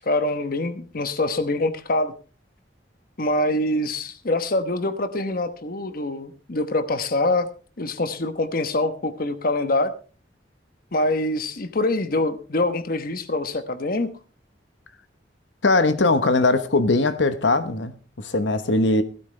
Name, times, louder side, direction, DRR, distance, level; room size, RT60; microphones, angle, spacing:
voice 1, 0.0-2.1 3.2-7.5 7.8-9.9 10.9-14.1 16.0-16.1, left 2 dB, 55° left, 1.1 m, -24 dB
voice 2, 15.6-19.0, left 2 dB, 85° left, 1.1 m, -20 dB
16.0 x 13.0 x 3.3 m
head